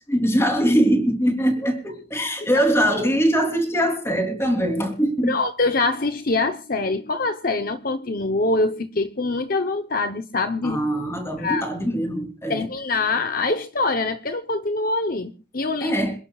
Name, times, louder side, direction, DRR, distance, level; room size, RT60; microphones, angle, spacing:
voice 1, 0.0-5.3 10.6-12.6 15.8-16.1, equal, 15° left, 4 dB, 3.3 m, -22 dB
voice 2, 5.3-10.8 11.4-11.6 12.5-15.9, left 3 dB, 50° left, 8 dB, 0.9 m, -24 dB
27.5 x 11.5 x 2.4 m, 0.32 s
head